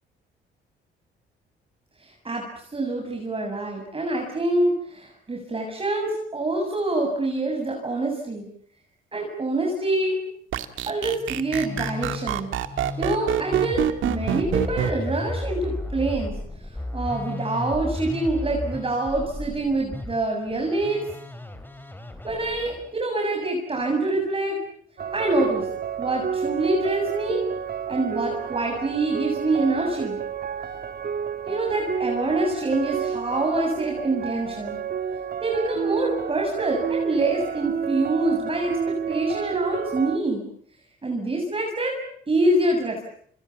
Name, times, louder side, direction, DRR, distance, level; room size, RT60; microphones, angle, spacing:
voice 1, 2.0-2.4 2.7-8.5 9.1-10.2 10.9-12.5 13.0-16.4 16.9-21.1 22.2-24.6 25.1-25.7 26.0-27.4 27.9-30.2 31.4-34.8 35.4-40.4 41.0-43.1, right 2 dB, 25° right, 1 dB, 7.4 m, -25 dB
sound 1, 10.5-14.9, right 11 dB, 80° right, 2.2 m, -25 dB
Musical instrument, 11.1-22.9, left 2 dB, 10° left, 4.2 m, -34 dB
sound 2, 25.0-40.2, right 7 dB, 50° right, 2.6 m, -30 dB
29.0 x 28.5 x 7.2 m, 0.62 s
cardioid pair, 90°, 20 cm